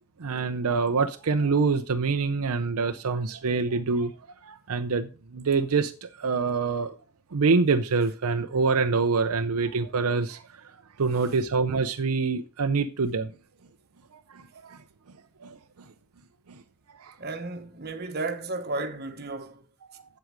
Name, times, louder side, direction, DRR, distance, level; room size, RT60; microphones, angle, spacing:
voice 1, 0.2-4.1 4.4-7.0 7.3-10.6 11.0-13.3 14.3-14.8 15.4-15.6 16.5-16.6 17.0-17.1, right 4 dB, 80° right, 0.6 m, -26 dB
voice 2, 17.2-19.7, right 3 dB, 45° right, 1.2 m, -33 dB
7.9 x 7.8 x 5.1 m
head